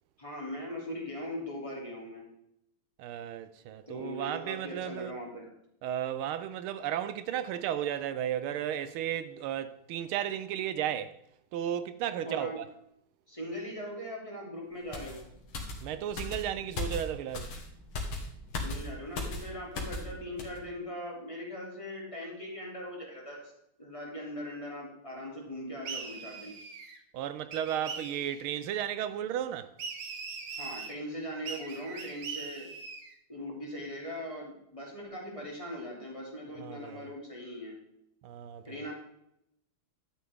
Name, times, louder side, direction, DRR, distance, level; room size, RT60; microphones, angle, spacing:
voice 1, 0.2-2.3 3.9-5.5 12.2-12.6 13.3-15.2 18.6-23.5 23.8-26.5 30.5-32.7 33.3-37.8 38.6-38.9, equal, 15° left, 2.8 m, -40 dB
voice 2, 3.0-5.1 5.8-11.2 11.5-12.7 15.8-17.5 27.1-29.7 36.5-37.1 38.2-38.8, right 10 dB, 80° right, 1.5 m, -34 dB
sound 1, 14.9-20.1 20.4-20.6, left 2 dB, 85° left, 2.5 m, -37 dB
sound 2, 25.8-27.0 27.5-28.5 29.8-31.0 31.5-33.1, right 5 dB, 65° right, 2.0 m, -41 dB
11.5 x 9.2 x 3.6 m
omnidirectional pair, 2.3 m